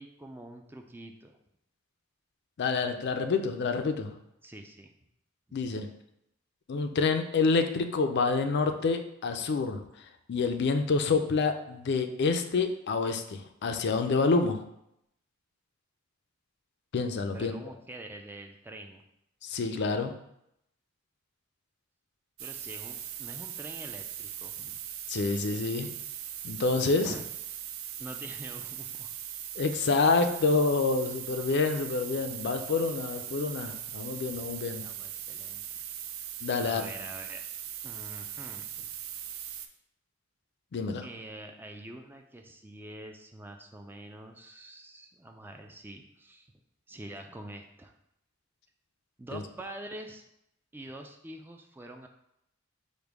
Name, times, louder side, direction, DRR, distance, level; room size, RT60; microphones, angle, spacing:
voice 1, 0.0-1.4 4.4-4.9 5.5-5.6 17.3-19.0 22.4-24.8 27.0-27.2 28.0-29.1 34.6-35.8 36.6-37.4 37.8-38.9 41.0-46.5 46.9-47.9 49.2-50.2 50.7-52.1, right 1 dB, 10° right, 3 dB, 0.3 m, -45 dB
voice 2, 2.6-4.1 5.5-5.9 6.7-14.6 16.9-17.5 19.4-20.1 25.1-25.9 26.4-27.1 29.6-34.9 36.4-36.9 40.7-41.1 49.3-49.4, left 4 dB, 55° left, 7 dB, 0.4 m, -28 dB
sound 1, 22.4-39.7, right 10 dB, 85° right, 0.4 m, -40 dB
5.1 x 2.2 x 4.6 m, 0.79 s
head